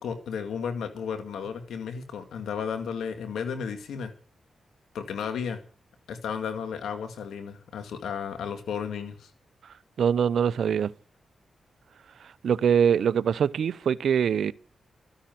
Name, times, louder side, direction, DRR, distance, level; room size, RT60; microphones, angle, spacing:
voice 1, 0.0-4.1 4.9-5.6 6.1-9.3, left 6 dB, 85° left, 2.2 m, -33 dB
voice 2, 10.0-10.9 12.4-14.5, right 7 dB, 75° right, 0.6 m, -23 dB
13.0 x 10.0 x 7.7 m
supercardioid pair, 50°, 0 cm